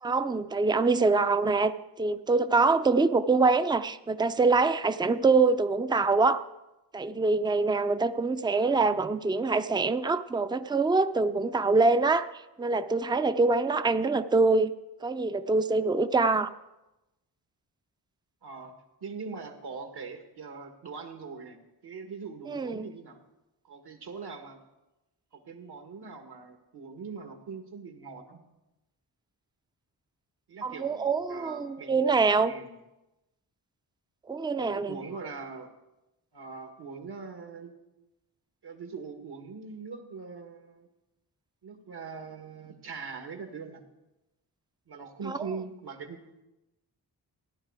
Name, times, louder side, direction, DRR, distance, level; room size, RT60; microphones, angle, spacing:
voice 1, 0.0-6.4 6.9-12.3 12.6-14.7 15.0-16.5 22.5-22.9 30.6-32.5 34.3-35.0 45.3-45.4, right 3 dB, 10° right, 12 dB, 0.5 m, -25 dB
voice 2, 8.5-9.0 18.4-18.7 19.0-23.2 23.6-24.6 25.3-28.4 30.5-31.0 31.3-32.1 32.4-32.8 34.6-35.7 36.3-37.7 38.6-40.9 41.6-43.8 44.9-46.4, right 5 dB, 70° right, 5 dB, 1.8 m, -42 dB
15.5 x 10.5 x 4.8 m, 0.98 s
cardioid pair, 80°, 41 cm